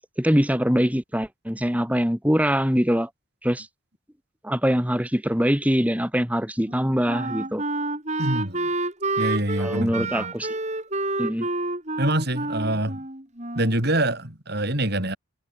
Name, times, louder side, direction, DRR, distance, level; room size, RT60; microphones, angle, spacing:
voice 1, 0.2-3.1 3.4-3.7 4.4-7.6 9.6-10.5 11.2-11.5, equal, 5° right, 2.3 m, -23 dB
Wind instrument woodwind instrument, 6.6-13.9, right 2 dB, 35° right, 4.4 m, -29 dB
voice 2, 8.2-8.7 9.2-10.3 12.0-13.0 13.6-15.2, right 1 dB, 50° right, 5.4 m, -25 dB
head